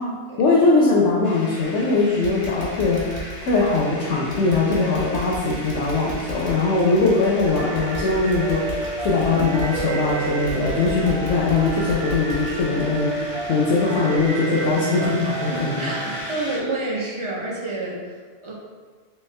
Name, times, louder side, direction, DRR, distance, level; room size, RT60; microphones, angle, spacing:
voice 1, 0.0-15.7, left 3 dB, 90° left, -5 dB, 0.9 m, -21 dB
sound 1, 1.2-16.6, left 1 dB, 30° left, 0.4 m, -38 dB
sound 2, 1.6-1.9 2.2-13.8 14.1-14.3 14.7-14.8, equal, 60° right, 1.1 m, -36 dB
sound 3, 7.5-16.2, right 3 dB, 85° right, 0.9 m, -30 dB
voice 2, 15.5-18.5, right 2 dB, 40° right, -4 dB, 0.4 m, -29 dB
3.4 x 2.7 x 3.2 m, 1.5 s
omnidirectional pair, 1.2 m